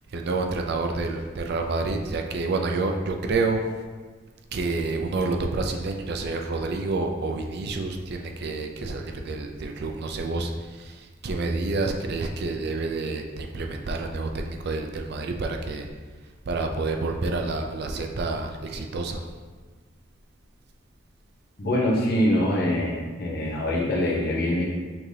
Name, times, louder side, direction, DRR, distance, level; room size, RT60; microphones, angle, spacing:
voice 1, 0.1-3.6 4.5-15.9 16.2-19.3, right 3 dB, 55° right, 3 dB, 0.4 m, -28 dB
voice 2, 21.6-24.6, left 1 dB, 50° left, -3 dB, 1.0 m, -24 dB
5.8 x 3.3 x 2.7 m, 1.4 s
head